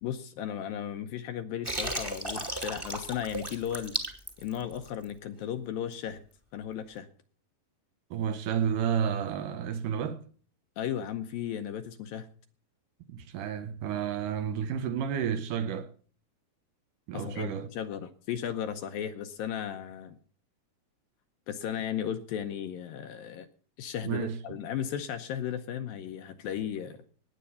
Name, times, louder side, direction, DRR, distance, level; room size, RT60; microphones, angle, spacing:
voice 1, 0.0-4.0 4.4-6.2 6.5-7.1 10.8-12.3 17.1-20.2 21.5-23.5 23.8-27.0, left 9 dB, 75° left, 2.3 m, -35 dB
Water, 1.6-5.1, right 1 dB, 10° right, 1.2 m, -35 dB
voice 2, 8.1-10.2 13.1-15.9 17.1-17.7 24.0-24.4, right 8 dB, 75° right, 2.0 m, -31 dB
18.5 x 8.3 x 5.6 m
omnidirectional pair, 4.6 m